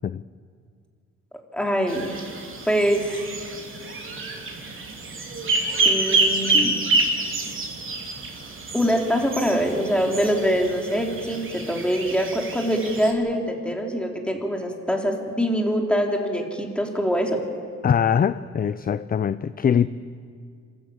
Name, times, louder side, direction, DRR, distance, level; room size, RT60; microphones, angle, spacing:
voice 1, 1.5-2.2 2.7-3.3 5.9-6.8 8.7-17.4, equal, 5° left, 1 dB, 3.5 m, -24 dB
sound 1, 1.9-13.1, right 3 dB, 40° right, 3.5 m, -27 dB
voice 2, 17.8-19.9, left 8 dB, 30° left, 15 dB, 0.5 m, -22 dB
27.0 x 13.5 x 8.7 m, 2.2 s
cardioid pair, 90°, 30 cm